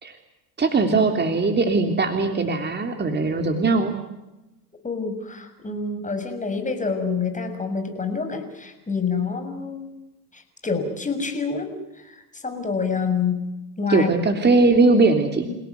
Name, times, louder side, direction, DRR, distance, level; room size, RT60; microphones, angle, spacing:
voice 1, 0.6-3.9 13.9-15.4, right 3 dB, 20° right, 5 dB, 3.4 m, -20 dB
voice 2, 4.8-9.9 10.3-13.4 13.8-14.1 15.3-15.6, left 5 dB, 15° left, 6 dB, 6.7 m, -27 dB
29.5 x 17.5 x 9.6 m, 1.0 s
hypercardioid pair, 85°, 46 cm